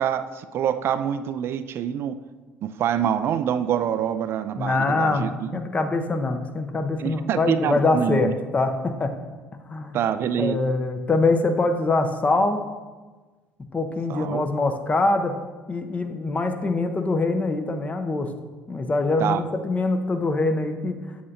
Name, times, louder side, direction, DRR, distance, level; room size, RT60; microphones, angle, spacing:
voice 1, 0.0-2.2 2.6-5.5 7.0-8.3 9.9-10.6 14.1-14.4 19.2-19.4, right 9 dB, 50° right, 11 dB, 0.3 m, -26 dB
voice 2, 4.6-9.1 9.7-10.0 10.4-12.6 13.7-15.3 15.7-18.3 18.7-21.0, left 3 dB, 25° left, 7 dB, 0.8 m, -24 dB
7.5 x 7.4 x 2.8 m, 1.3 s
hypercardioid pair, 60°, 5 cm